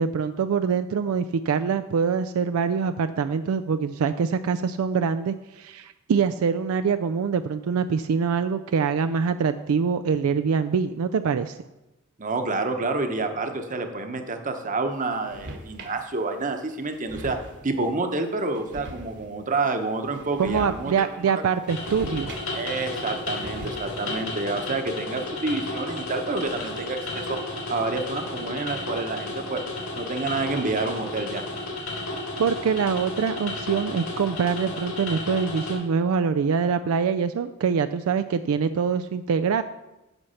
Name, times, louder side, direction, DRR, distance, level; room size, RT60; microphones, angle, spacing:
voice 1, 0.0-11.6 20.4-22.3 32.4-39.6, right 6 dB, 75° right, 10 dB, 0.4 m, -24 dB
voice 2, 12.2-17.4 17.6-21.1 21.4-21.5 22.5-27.4 27.7-29.6 30.0-31.4, right 3 dB, 40° right, 6 dB, 1.0 m, -28 dB
sound 1, 15.0-16.0 16.5-16.6 16.8-17.8 18.5-19.5 20.0-21.0 21.3-22.8 23.1-24.1, right 1 dB, 55° right, 1.2 m, -40 dB
sound 2, 21.7-35.7, left 2 dB, 70° left, 3.6 m, -33 dB
8.1 x 7.0 x 5.6 m, 0.99 s
head